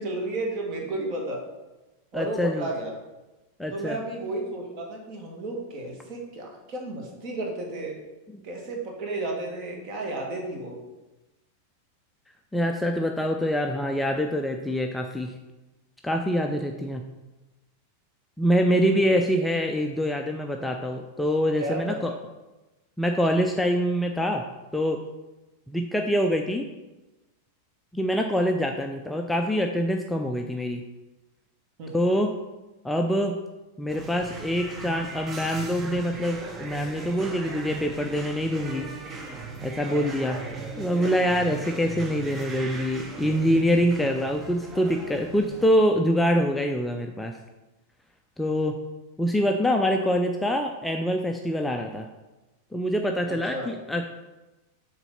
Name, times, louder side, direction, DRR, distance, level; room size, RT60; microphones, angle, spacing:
voice 1, 0.0-1.5 2.1-2.9 3.7-8.0 8.4-10.8 18.9-19.2 21.5-22.2 31.8-32.0 39.8-40.1 53.3-53.7, right 2 dB, 40° right, 0 dB, 1.9 m, -33 dB
voice 2, 2.1-2.7 3.6-4.0 12.5-15.3 16.0-17.0 18.4-22.1 23.0-24.4 24.7-25.0 25.7-26.7 27.9-30.8 31.9-32.3 32.8-33.4 33.8-38.9 39.6-40.4 40.8-47.4 48.4-48.8 49.2-52.1 52.7-54.0, equal, 5° left, 3 dB, 0.5 m, -25 dB
sound 1, 33.9-45.7, right 4 dB, 25° right, 1.0 m, -38 dB
6.8 x 3.9 x 5.7 m, 1.1 s
figure-of-eight pair, 90°, 0 cm